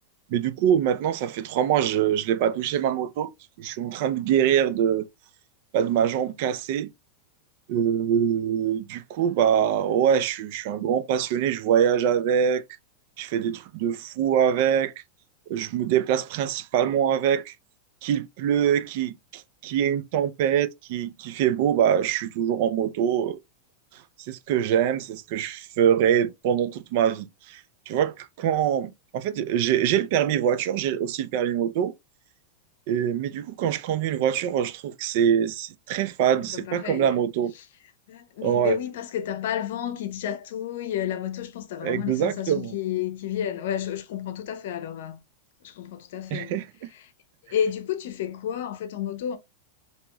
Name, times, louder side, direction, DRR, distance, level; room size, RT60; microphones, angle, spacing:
voice 1, 0.3-3.3 3.6-5.1 5.7-6.9 7.7-12.6 13.2-14.9 15.5-17.5 18.0-23.4 24.3-31.9 32.9-37.5 38.4-38.8 41.8-42.7 46.3-46.9, right 9 dB, 60° right, 0.4 m, -24 dB
voice 2, 36.5-37.2 37.6-37.7 38.1-45.2 45.6-46.5 46.9-47.1 47.5-49.4, left 9 dB, 70° left, 0.6 m, -31 dB
2.9 x 2.8 x 2.3 m
supercardioid pair, 135°, 0 cm